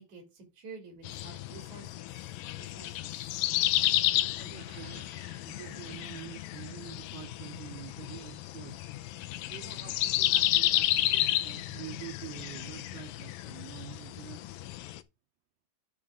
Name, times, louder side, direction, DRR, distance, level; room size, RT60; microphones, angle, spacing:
voice 1, 0.0-2.1 2.6-2.9, right 4 dB, 50° right, 3.8 m, -49 dB
sound 1, 1.0-15.0, left 14 dB, 80° left, 2.1 m, -32 dB
sound 2, 3.5-7.0 7.4-7.6, left 2 dB, 20° left, 2.4 m, -56 dB
voice 2, 4.4-8.8 9.5-14.4, right 14 dB, 80° right, 2.6 m, -47 dB
10.5 x 6.4 x 3.5 m
omnidirectional pair, 4.5 m